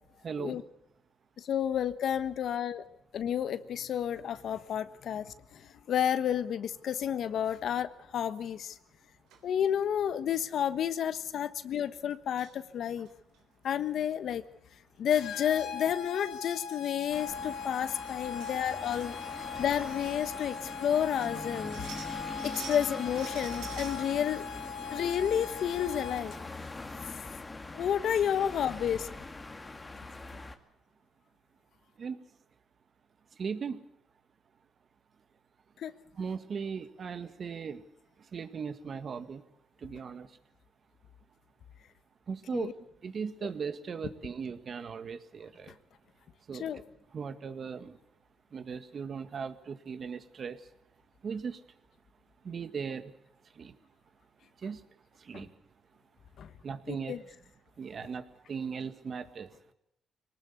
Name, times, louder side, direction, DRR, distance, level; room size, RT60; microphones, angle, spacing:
voice 1, 0.2-0.6 32.0-32.2 33.4-33.8 36.2-37.8 38.3-39.4 39.8-40.3 42.3-42.7 43.0-45.7 46.5-46.7 47.1-47.9 48.5-50.6 51.2-51.6 52.5-53.1 53.6-53.7 54.6-54.8 55.3-55.5 56.6-57.1 57.8-58.2 58.5-59.5, right 6 dB, 50° right, 10 dB, 1.8 m, -37 dB
voice 2, 1.4-2.8 3.1-5.6 5.9-8.7 9.4-13.1 13.6-14.4 15.0-19.2 19.6-21.8 22.4-24.5 24.9-26.4 27.7-29.1 35.8-35.9 42.5-42.7 43.4-43.5 46.5-46.8 55.3-55.4 56.4-56.5 56.9-57.2, left 9 dB, 65° left, 13 dB, 1.2 m, -31 dB
sound 1, 8.3-8.7 9.3-9.4 10.3-10.5 10.9-11.0 11.2-11.4 12.1-12.6 13.0-13.4 15.1-15.2 15.5-15.7 16.2-16.3 17.0-17.2 17.6-17.7 18.1-18.6 18.9-19.6 19.9-20.0 20.6-20.7 21.0-24.0 24.5-25.4 25.7-25.8 26.2-26.3 26.6-26.8, right 7 dB, 90° right, 3.6 m, -49 dB
sound 2, 15.1-26.5, left 6 dB, 90° left, 3.2 m, -40 dB
sound 3, 17.1-30.6, left 2 dB, 20° left, 2.2 m, -43 dB
22.5 x 19.0 x 8.2 m, 0.79 s
cardioid pair, 90°, 0 cm